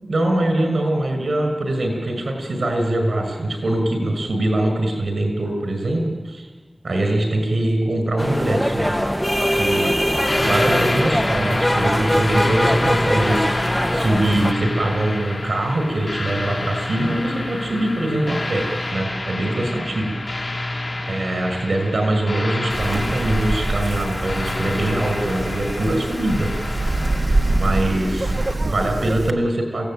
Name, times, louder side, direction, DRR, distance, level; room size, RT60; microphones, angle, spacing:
voice 1, 0.1-6.5 6.8-9.0 9.5-9.9 10.4-18.6 18.9-20.7 21.1-26.5 27.6-28.3 28.6-29.9, right 1 dB, 80° right, 4 dB, 6.3 m, -23 dB
sound 1, 8.2-14.5, equal, 5° left, 1.6 m, -21 dB
sound 2, 10.2-28.5, left 2 dB, 45° left, 6.1 m, -28 dB
Wind, 22.7-29.3, right 2 dB, 50° right, 1.5 m, -25 dB
28.5 x 17.5 x 9.3 m, 1.3 s
wide cardioid pair, 65°, 0 cm